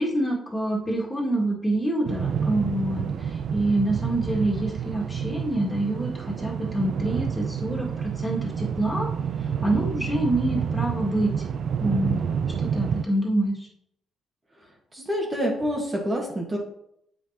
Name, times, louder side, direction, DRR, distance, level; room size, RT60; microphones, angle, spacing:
voice 1, 0.0-9.1 9.6-11.3 11.8-12.2 12.6-13.7, right 1 dB, 15° left, -2 dB, 1.9 m, -26 dB
sound 1, 2.0-13.0, right 7 dB, 60° right, 0.4 m, -29 dB
voice 2, 14.6-16.6, equal, 25° right, -1 dB, 1.5 m, -28 dB
7.5 x 5.9 x 2.8 m, 0.74 s
cardioid pair, 90°, 0 cm